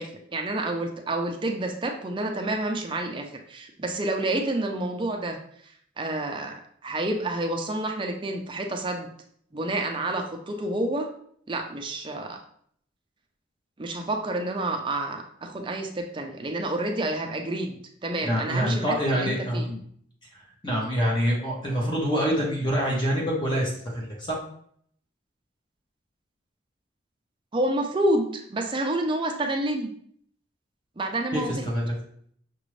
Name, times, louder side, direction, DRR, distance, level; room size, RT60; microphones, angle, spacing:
voice 1, 0.0-5.4 6.0-9.1 9.5-11.1 11.5-12.4 13.8-19.7 27.5-29.9 31.0-31.6, right 1 dB, 25° right, 3 dB, 0.5 m, -29 dB
voice 2, 18.2-19.8 20.6-24.4 31.3-31.9, equal, 25° left, -2 dB, 0.9 m, -26 dB
5.9 x 2.6 x 3.1 m, 0.64 s
head